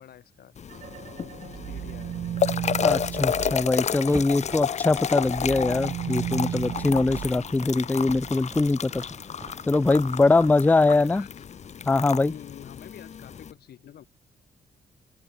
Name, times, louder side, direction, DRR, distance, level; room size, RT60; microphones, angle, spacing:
voice 1, 0.0-2.2 7.2-7.4 10.4-11.3 12.2-14.0, left 11 dB, 90° left, 6.0 m, -48 dB
sound 1, 0.6-13.5, left 7 dB, 45° left, 1.3 m, -31 dB
sound 2, 0.7-4.6 5.0-8.3, right 10 dB, 55° right, 0.4 m, -35 dB
sound 3, 2.6-10.6, right 3 dB, 20° right, 1.1 m, -45 dB
voice 2, 2.8-9.0 9.7-11.3 11.9-12.3, left 3 dB, 10° left, 0.5 m, -22 dB
wide cardioid pair, 155°, 16 cm